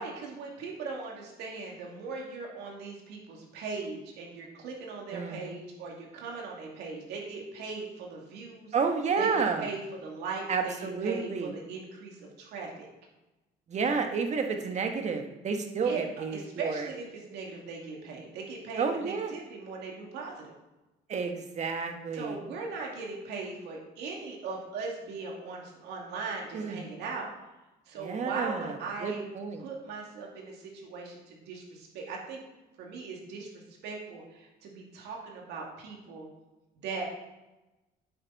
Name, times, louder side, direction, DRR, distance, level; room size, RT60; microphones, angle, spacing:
voice 1, 0.0-8.7 9.2-12.9 15.8-16.0 16.3-20.5 22.1-27.3 27.9-29.3 29.6-32.4 32.8-36.3 36.8-37.0, right 4 dB, 80° right, -1 dB, 2.5 m, -39 dB
voice 2, 5.1-5.6 8.7-9.7 10.5-11.5 13.7-16.9 18.8-19.3 21.1-22.4 26.5-26.9 28.0-29.6, right 5 dB, 45° right, 5 dB, 1.4 m, -31 dB
9.4 x 7.9 x 4.1 m, 1.0 s
cardioid pair, 110°, 17 cm